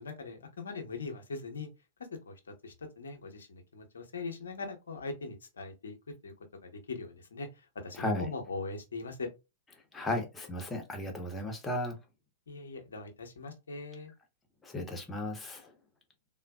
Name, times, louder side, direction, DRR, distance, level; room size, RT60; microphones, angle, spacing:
voice 1, 0.0-1.7 2.1-2.3 2.6-5.9 6.2-6.3 6.6-7.5 7.7-9.3 12.5-14.1, left 3 dB, 70° left, 0.9 m, -41 dB
voice 2, 7.9-8.3 9.9-12.0 14.6-15.7, left 1 dB, 15° left, 1.0 m, -35 dB
3.7 x 2.4 x 2.2 m
figure-of-eight pair, 100°, 0 cm